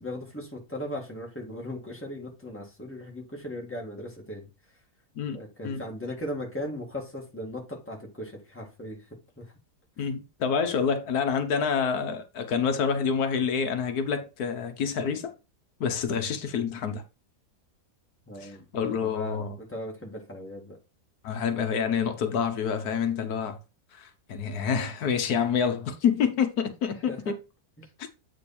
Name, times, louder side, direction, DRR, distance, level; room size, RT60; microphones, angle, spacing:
voice 1, 0.0-4.8 5.3-9.1 9.4-9.5 10.0-10.1 18.3-20.8 27.1-27.3 27.8-27.9, left 1 dB, 10° left, 2.2 m, -38 dB
voice 2, 10.0-15.3 15.8-17.0 18.4-19.6 21.2-23.6 23.9-27.4, left 6 dB, 90° left, 1.5 m, -27 dB
8.5 x 3.6 x 4.3 m
omnidirectional pair, 1.6 m